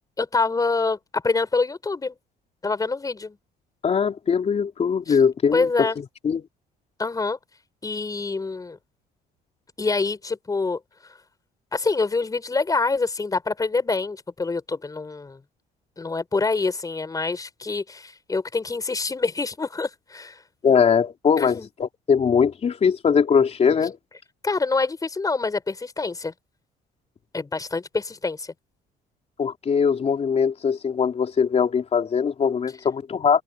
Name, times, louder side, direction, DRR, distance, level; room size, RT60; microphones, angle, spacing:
voice 1, 0.2-2.2 2.6-3.4 5.1-5.2 5.5-6.0 7.0-7.4 7.8-8.8 9.8-10.8 11.7-15.4 16.0-20.4 21.4-21.7 24.4-26.3 27.3-28.5, left 3 dB, 20° left, 5.4 m, -26 dB
voice 2, 3.8-5.9 6.2-6.4 20.6-24.0 29.4-33.4, left 6 dB, 40° left, 4.1 m, -21 dB
cardioid pair, 110°, 17 cm